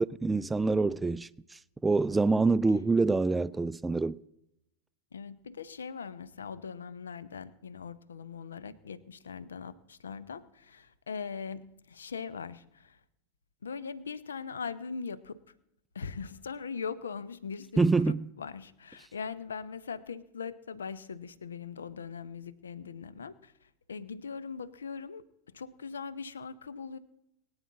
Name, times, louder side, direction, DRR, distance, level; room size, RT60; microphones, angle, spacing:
voice 1, 0.0-4.2 17.8-18.2, right 3 dB, 10° right, 0.4 m, -26 dB
voice 2, 5.1-13.0 13.6-15.4 15.9-25.2 25.5-27.0, left 5 dB, 70° left, 0.8 m, -41 dB
22.0 x 9.7 x 3.7 m
figure-of-eight pair, 90°, 0 cm